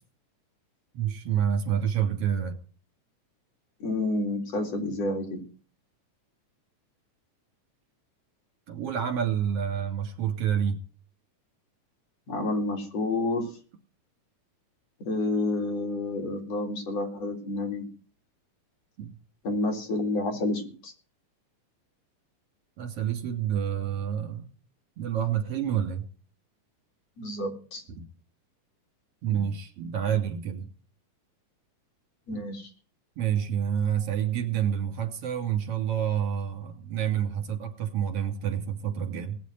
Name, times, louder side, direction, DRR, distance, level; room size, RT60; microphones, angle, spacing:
voice 1, 0.9-2.6 8.7-10.8 19.0-19.1 22.8-24.5 25.0-26.1 27.9-28.1 29.2-30.7 32.3-32.4 33.2-39.4, right 9 dB, 50° right, 6 dB, 3.8 m, -28 dB
voice 2, 3.8-5.4 12.3-13.5 15.1-17.8 19.4-20.9 27.2-27.8 32.3-32.6, left 2 dB, 50° left, 3 dB, 5.0 m, -29 dB
19.5 x 7.6 x 9.5 m, 0.39 s
omnidirectional pair, 3.6 m